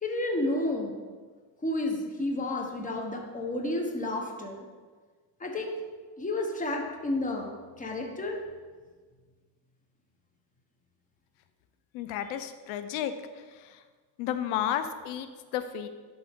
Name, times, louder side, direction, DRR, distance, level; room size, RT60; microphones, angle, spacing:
voice 1, 0.0-1.0 1.6-4.6 5.4-5.7 6.2-7.5 7.8-8.4 12.3-12.4, left 2 dB, 15° left, 1 dB, 1.2 m, -31 dB
voice 2, 11.9-13.1 14.2-15.9, left 10 dB, 85° left, 10 dB, 0.7 m, -32 dB
11.5 x 3.8 x 3.6 m, 1.5 s
cardioid pair, 110°, 47 cm